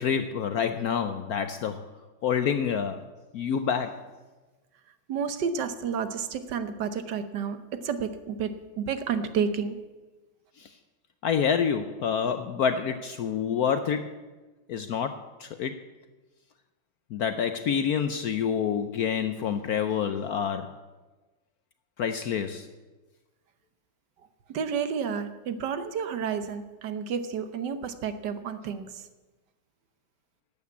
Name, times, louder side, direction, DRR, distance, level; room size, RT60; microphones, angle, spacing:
voice 1, 0.0-1.8 2.2-3.0 3.3-4.0 10.6-10.7 11.2-14.2 14.7-15.8 17.1-20.7 22.0-22.7, left 7 dB, 70° left, 9 dB, 0.9 m, -27 dB
voice 2, 5.1-7.6 7.8-9.8 24.5-28.9, right 6 dB, 65° right, 10 dB, 1.4 m, -30 dB
12.0 x 8.5 x 8.3 m, 1.2 s
omnidirectional pair, 2.1 m